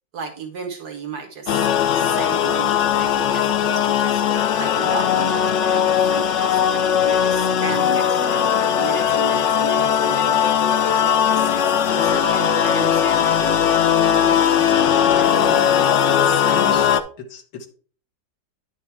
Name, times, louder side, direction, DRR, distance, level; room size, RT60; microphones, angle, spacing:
voice 1, 0.1-1.7 1.9-4.2 4.6-10.4 10.8-13.4 13.8-14.7 15.2-16.9, right 5 dB, 65° right, 5 dB, 1.6 m, -35 dB
sound 1, 1.5-17.0, left 8 dB, 65° left, 0.7 m, -19 dB
voice 2, 16.5-16.8 17.3-17.7, left 6 dB, 85° left, 4 dB, 1.9 m, -34 dB
10.0 x 6.1 x 3.3 m, 0.41 s
omnidirectional pair, 1.9 m